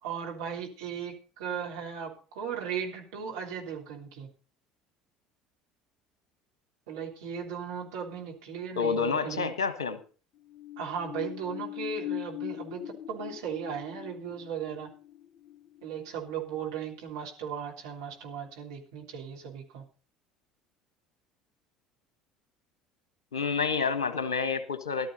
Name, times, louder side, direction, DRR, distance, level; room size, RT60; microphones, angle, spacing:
voice 1, 0.0-4.3 6.9-9.5 10.8-14.9 15.8-19.9, right 7 dB, 65° right, 0 dB, 3.4 m, -37 dB
voice 2, 8.7-10.0 23.3-25.1, left 5 dB, 75° left, 11 dB, 1.3 m, -29 dB
sound 1, 10.4-16.7 17.1-17.2, left 13 dB, 45° left, 0.6 m, -41 dB
15.0 x 12.5 x 4.0 m, 0.37 s
figure-of-eight pair, 60°, 2 cm